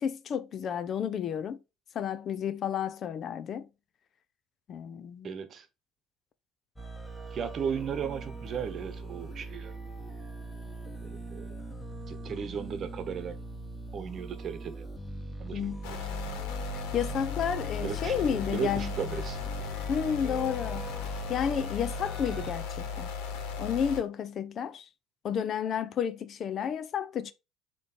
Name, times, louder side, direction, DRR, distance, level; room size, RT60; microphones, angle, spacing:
voice 1, 0.0-1.6 1.9-3.7 4.7-5.4 15.5-15.8 16.9-18.9 19.9-20.9 21.3-23.1 23.6-24.9 25.2-27.3, left 8 dB, 50° left, 0.6 m, -31 dB
voice 2, 5.2-5.7 7.3-9.7 11.0-11.5 12.1-13.4 13.9-14.9 15.4-15.6 16.0-16.1 17.8-19.4, right 7 dB, 45° right, 1.1 m, -36 dB
sound 1, 6.8-22.5, right 1 dB, 10° left, 1.5 m, -40 dB
sound 2, 15.8-24.0, left 6 dB, 85° left, 1.5 m, -36 dB
7.3 x 3.1 x 4.2 m
cardioid pair, 110°, 0 cm